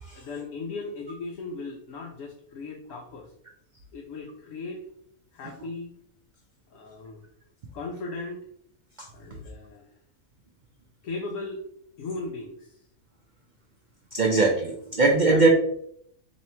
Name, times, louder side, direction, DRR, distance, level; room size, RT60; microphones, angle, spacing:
voice 1, 0.1-3.3 3.9-4.9 5.3-6.0 6.7-7.2 7.7-8.4 9.1-9.9 11.0-11.6 12.0-12.8 15.3-15.4, left 3 dB, 70° left, 1 dB, 1.0 m, -37 dB
voice 2, 9.0-9.4 14.1-15.5, right 3 dB, 85° right, 1 dB, 0.4 m, -22 dB
3.1 x 2.8 x 4.2 m, 0.70 s
omnidirectional pair, 1.5 m